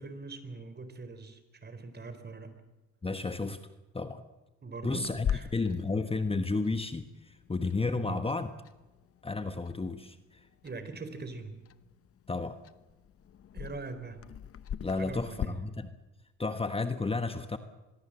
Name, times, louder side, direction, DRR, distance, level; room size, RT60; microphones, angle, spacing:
voice 1, 0.0-2.6 4.6-5.5 7.9-8.2 10.6-11.6 13.5-14.3 14.9-15.7, right 3 dB, 35° right, 10 dB, 4.0 m, -42 dB
voice 2, 3.0-3.6 3.9-4.2 4.8-8.5 9.2-10.5 12.3-12.6 14.8-15.9 16.4-17.6, left 3 dB, 20° left, 9 dB, 1.3 m, -32 dB
Clock, 5.0-15.5, left 9 dB, 50° left, 0.9 m, -42 dB
24.5 x 22.0 x 7.7 m, 1.1 s
cardioid pair, 90°, 30 cm